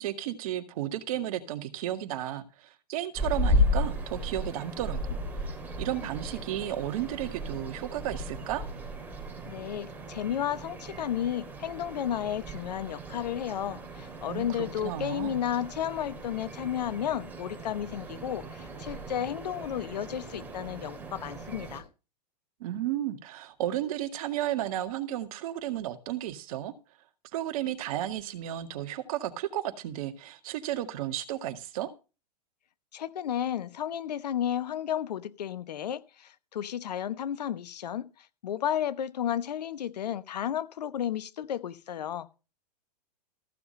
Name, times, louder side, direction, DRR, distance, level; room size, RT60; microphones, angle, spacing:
voice 1, 0.0-5.2 5.8-8.6 14.3-15.4 22.6-26.7 27.3-31.9, right 12 dB, 55° right, 1.9 m, -33 dB
sound 1, 3.1-21.8, left 1 dB, 10° right, 4.0 m, -35 dB
voice 2, 9.4-21.8 32.9-42.3, left 10 dB, 75° left, 1.0 m, -33 dB
15.0 x 6.9 x 5.3 m
hypercardioid pair, 110°, 21 cm